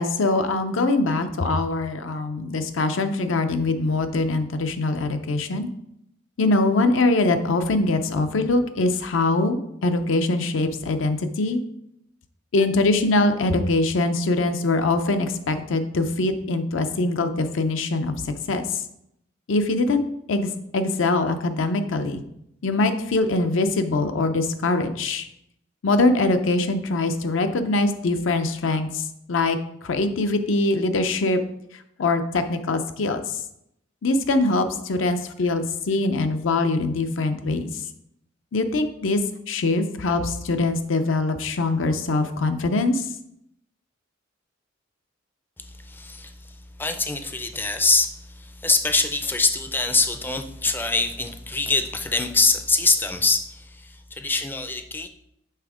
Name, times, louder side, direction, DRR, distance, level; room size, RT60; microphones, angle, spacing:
voice 1, 0.0-5.7 6.4-11.6 12.5-18.1 18.5-18.6 19.5-22.2 22.6-25.3 25.8-29.0 29.3-29.6 29.8-31.4 32.0-33.2 34.0-37.7 38.5-39.2 39.5-43.0, left 2 dB, 75° left, 8 dB, 0.5 m, -23 dB
voice 2, 45.6-55.1, left 3 dB, 10° left, 7 dB, 0.4 m, -24 dB
5.6 x 3.5 x 4.9 m, 0.77 s
head